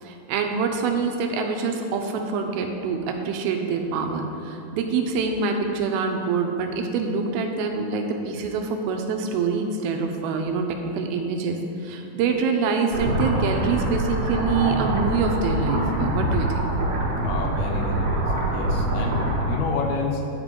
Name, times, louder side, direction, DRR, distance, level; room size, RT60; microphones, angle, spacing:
voice 1, 0.0-10.7 10.9-16.5, right 5 dB, 85° right, 3 dB, 2.5 m, -25 dB
sound 1, 12.9-19.6, right 1 dB, 65° right, 2.3 m, -24 dB
voice 2, 17.2-20.3, left 4 dB, 80° left, 2 dB, 2.2 m, -29 dB
9.9 x 3.7 x 5.2 m, 2.7 s
omnidirectional pair, 4.4 m